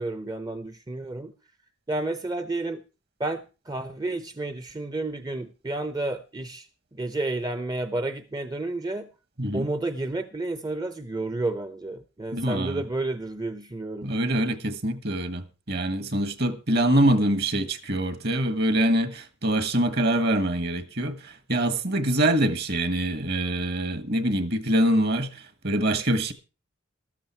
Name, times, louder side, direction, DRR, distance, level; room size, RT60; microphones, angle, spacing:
voice 1, 0.0-1.3 1.9-2.8 3.2-9.1 9.5-14.1, right 2 dB, 20° right, 0.6 m, -31 dB
voice 2, 9.4-9.7 12.3-12.8 14.0-26.3, right 1 dB, 50° right, 1.6 m, -24 dB
13.0 x 13.0 x 4.4 m
head